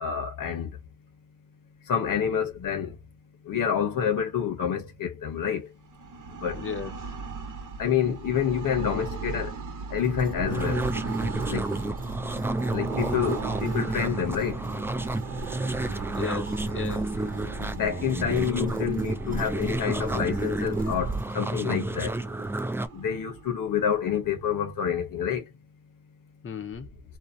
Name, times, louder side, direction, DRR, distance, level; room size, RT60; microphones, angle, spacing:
voice 1, 0.0-0.7 1.9-2.9 3.5-5.7 6.4-6.6 7.8-9.5 9.9-10.8 11.5-11.6 12.7-14.6 17.6-22.1 22.9-25.4, left 8 dB, 85° left, 1.0 m, -28 dB
sound 1, 5.8-24.6, right 5 dB, 70° right, 0.9 m, -38 dB
voice 2, 6.5-7.1 16.1-17.1 26.4-26.9, left 6 dB, 40° left, 0.6 m, -35 dB
sound 2, 10.0-21.3, right 2 dB, 25° right, 0.8 m, -40 dB
sound 3, 10.5-22.9, right 2 dB, 10° right, 0.3 m, -30 dB
2.7 x 2.0 x 2.6 m
cardioid pair, 65°, 32 cm